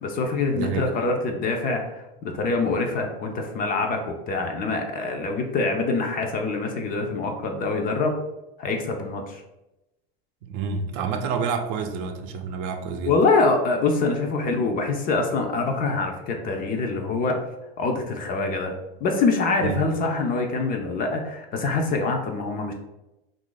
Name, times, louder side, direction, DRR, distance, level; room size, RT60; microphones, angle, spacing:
voice 1, 0.0-8.1 8.6-9.4 13.1-17.4 17.8-18.8 19.0-22.7, left 3 dB, 30° left, 3 dB, 0.4 m, -25 dB
voice 2, 0.5-0.9 10.4-13.1 19.6-19.8, right 6 dB, 60° right, 6 dB, 0.6 m, -28 dB
2.7 x 2.4 x 3.8 m, 0.96 s
supercardioid pair, 125°, 31 cm